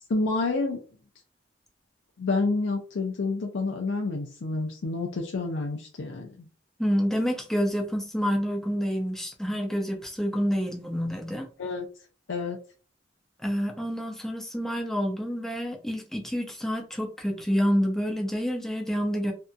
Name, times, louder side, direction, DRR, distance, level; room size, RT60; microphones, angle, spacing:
voice 1, 0.1-0.8 2.2-6.5 11.6-11.9 12.3-12.6, left 3 dB, 90° left, 0.5 m, -28 dB
voice 2, 6.8-11.5 13.4-19.3, equal, ahead, 0.5 m, -28 dB
2.7 x 2.5 x 2.3 m
head